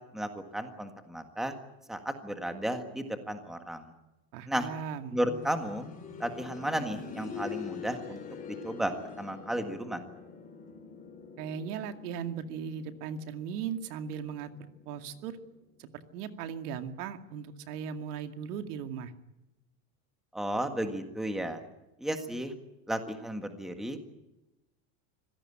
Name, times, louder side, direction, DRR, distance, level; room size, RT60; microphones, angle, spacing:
voice 1, 0.1-1.5 1.9-3.9 4.5-4.7 5.1-5.8 6.2-8.2 8.5-10.0 20.3-21.6 22.0-22.5 22.9-24.0, right 1 dB, ahead, 6 dB, 1.7 m, -33 dB
voice 2, 4.3-5.2 11.4-15.4 15.8-19.1, right 7 dB, 80° right, 7 dB, 2.4 m, -38 dB
sound 1, 5.2-16.0 17.3-17.4, left 6 dB, 15° left, 3.6 m, -45 dB
25.5 x 17.0 x 9.9 m, 0.95 s
cardioid pair, 175°, 45 cm